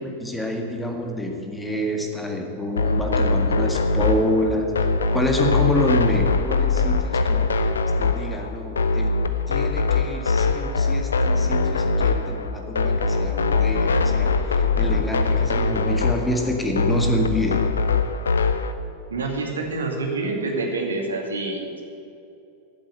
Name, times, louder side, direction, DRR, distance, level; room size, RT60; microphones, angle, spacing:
voice 1, 0.0-4.7 5.1-7.5 8.0-9.1 9.5-17.6, left 1 dB, 5° left, 2 dB, 1.8 m, -27 dB
sound 1, 2.8-18.7, left 3 dB, 70° left, 0.6 m, -22 dB
voice 2, 19.1-21.8, right 3 dB, 70° right, 2 dB, 2.1 m, -27 dB
13.5 x 7.6 x 8.1 m, 2.7 s
figure-of-eight pair, 90°, 0 cm